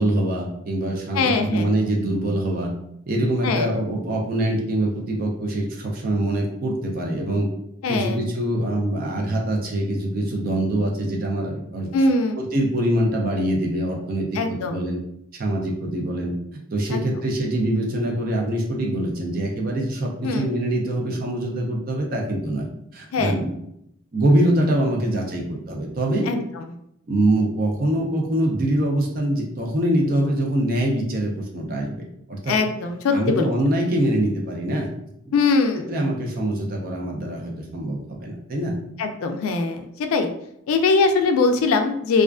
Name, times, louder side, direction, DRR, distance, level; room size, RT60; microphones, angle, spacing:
voice 1, 0.0-2.7 3.1-7.5 7.9-11.9 12.4-15.0 15.4-16.3 16.7-22.7 22.9-23.5 24.1-26.3 27.1-32.6 33.1-34.9 35.2-35.3 35.7-38.8, right 1 dB, 45° right, 0 dB, 0.4 m, -24 dB
voice 2, 1.1-1.7 3.4-3.7 7.8-8.2 11.9-12.5 14.3-14.8 16.9-17.0 20.2-20.5 23.1-23.3 26.3-26.4 32.5-33.5 35.3-35.9 39.0-40.3 40.7-42.2, left 3 dB, 85° left, 7 dB, 0.3 m, -21 dB
2.3 x 2.3 x 2.2 m, 0.75 s
head